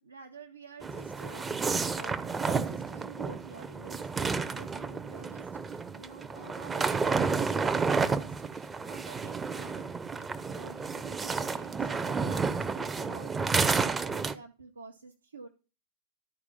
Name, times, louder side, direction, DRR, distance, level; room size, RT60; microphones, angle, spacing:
voice 1, 0.0-15.5, right 4 dB, 80° right, 1 dB, 0.8 m, -49 dB
sound 1, 0.8-14.3, right 4 dB, 15° right, 0.6 m, -31 dB
12.5 x 4.8 x 5.3 m, 0.32 s
figure-of-eight pair, 90°, 0 cm